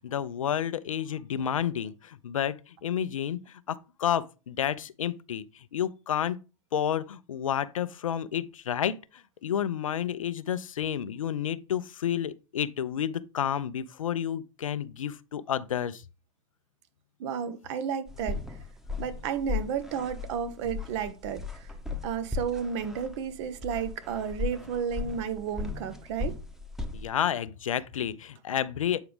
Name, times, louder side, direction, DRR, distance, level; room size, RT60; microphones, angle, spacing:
voice 1, 0.0-6.4 6.7-16.0 26.9-29.0, left 9 dB, 85° left, 0.5 m, -30 dB
voice 2, 17.2-18.4 19.0-21.7 22.0-26.4, right 7 dB, 60° right, 0.9 m, -32 dB
sound 1, 18.1-27.1, left 4 dB, ahead, 0.9 m, -37 dB
8.1 x 4.8 x 3.4 m
hypercardioid pair, 95°, 17 cm